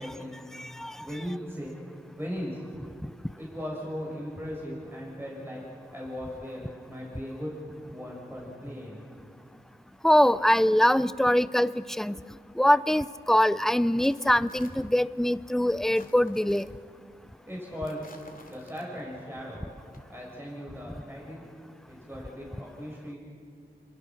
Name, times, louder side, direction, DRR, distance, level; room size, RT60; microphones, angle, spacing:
voice 1, 0.0-0.5 1.0-1.8 2.2-2.6 3.4-5.7 5.9-7.6 7.9-9.0 17.5-18.2 18.5-19.6 20.1-21.4 21.9-23.2, equal, 15° right, -4 dB, 7.3 m, -38 dB
voice 2, 0.5-1.0 10.0-12.2 12.6-16.7, left 1 dB, ahead, 15 dB, 0.6 m, -23 dB
sound 1, 13.9-15.1 15.9-16.9 17.9-19.2 19.8-20.0, left 2 dB, 55° left, 3.0 m, -53 dB
28.0 x 23.5 x 6.4 m, 2.4 s
wide cardioid pair, 55°, 18 cm